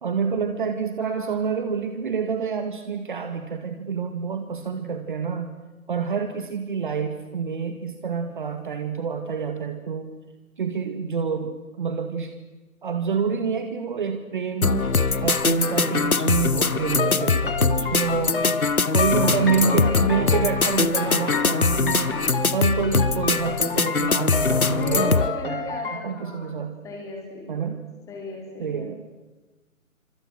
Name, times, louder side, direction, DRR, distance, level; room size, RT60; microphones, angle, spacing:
voice 1, 0.0-5.5 5.9-10.2 10.6-12.3 12.8-18.5 18.9-26.7 27.5-27.8 28.6-29.2, right 6 dB, 35° right, 8 dB, 2.1 m, -27 dB
voice 2, 1.0-1.5 19.1-20.4 24.3-27.7 28.1-28.9, left 2 dB, 5° left, 0 dB, 4.5 m, -36 dB
sound 1, 14.6-25.3, left 4 dB, 85° left, 1.1 m, -22 dB
sound 2, 16.9-26.0, left 4 dB, 40° left, 2.7 m, -31 dB
28.5 x 26.0 x 6.4 m, 1.2 s
figure-of-eight pair, 145°, 42 cm